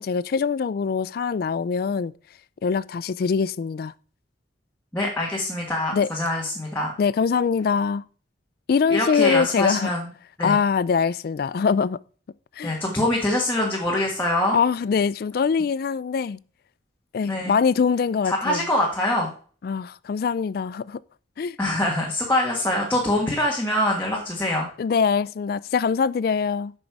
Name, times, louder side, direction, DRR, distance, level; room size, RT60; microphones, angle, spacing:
voice 1, 0.0-2.1 2.6-3.9 5.9-6.1 7.0-8.0 8.7-9.9 10.4-12.0 12.6-12.8 14.5-16.4 17.1-18.6 19.6-21.0 21.4-21.6 24.8-26.7, left 6 dB, 50° left, 0.3 m, -23 dB
voice 2, 4.9-6.9 8.9-10.1 10.4-10.6 12.6-14.6 17.3-17.6 18.2-19.3 21.6-24.7, left 1 dB, 10° left, 1.5 m, -24 dB
8.6 x 6.3 x 4.7 m
head